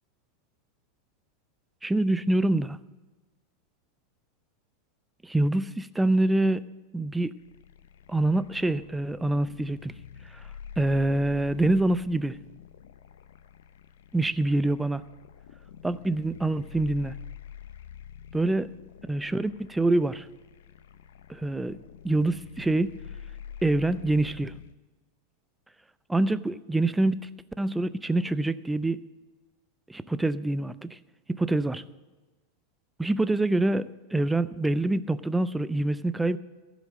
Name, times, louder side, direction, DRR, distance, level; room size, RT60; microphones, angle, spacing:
voice 1, 1.8-2.8 5.2-6.6 6.9-7.3 8.1-9.9 10.3-10.4 10.8-12.4 14.1-15.0 15.8-17.1 18.3-18.7 19.1-20.3 21.3-21.8 22.0-23.0 23.6-24.5 26.1-27.3 27.6-29.0 29.9-31.0 31.4-31.8 33.0-36.4, right 2 dB, 10° right, 14 dB, 0.5 m, -25 dB
sound 1, 7.4-24.7, left 8 dB, 80° left, 0.6 m, -47 dB
15.5 x 5.1 x 7.4 m, 1.3 s
hypercardioid pair, 100°, 0 cm